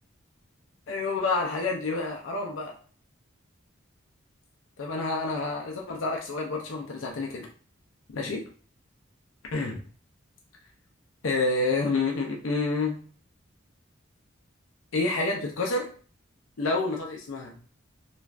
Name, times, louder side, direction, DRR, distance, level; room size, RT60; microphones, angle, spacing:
voice 1, 0.9-2.7 4.8-7.5 8.1-8.4 9.5-9.8 11.2-13.0 14.9-15.9 16.6-17.6, left 3 dB, 80° left, 0 dB, 0.5 m, -28 dB
3.2 x 2.4 x 2.4 m, 0.41 s
head